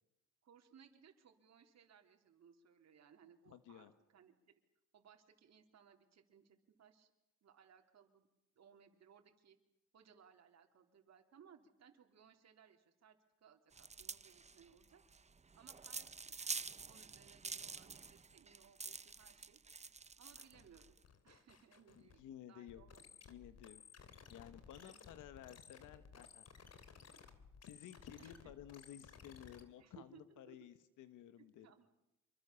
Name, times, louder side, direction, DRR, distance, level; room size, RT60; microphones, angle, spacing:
voice 1, 0.4-4.6 4.9-7.1 7.4-8.3 8.6-9.6 9.9-15.0 15.5-19.6 20.2-20.9 21.2-23.2 24.7-25.0 28.2-28.5 29.8-30.6 31.4-31.9, right 7 dB, 60° right, 3 dB, 3.9 m, -65 dB
voice 2, 3.5-3.9 22.2-22.8 23.3-23.8 24.3-26.5 27.6-31.7, left 11 dB, 85° left, 12 dB, 1.6 m, -55 dB
sound 1, 13.7-21.0, right 4 dB, 20° right, 0.9 m, -48 dB
sound 2, 20.3-22.2 22.7-29.6, left 6 dB, 55° left, 3.1 m, -59 dB
27.0 x 24.0 x 7.1 m, 0.92 s
cardioid pair, 90°, 30 cm